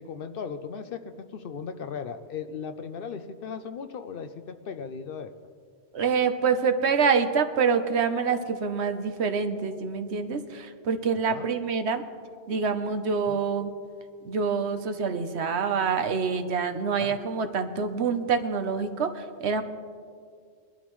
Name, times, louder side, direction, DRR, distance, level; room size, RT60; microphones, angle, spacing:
voice 1, 0.0-5.3 11.1-11.5 13.3-13.4 16.9-17.1, left 6 dB, 60° left, 9 dB, 0.7 m, -37 dB
voice 2, 5.9-12.0 12.5-13.7 14.2-19.6, right 5 dB, 75° right, 8 dB, 1.1 m, -26 dB
21.5 x 12.0 x 3.1 m, 2.1 s
omnidirectional pair, 1.1 m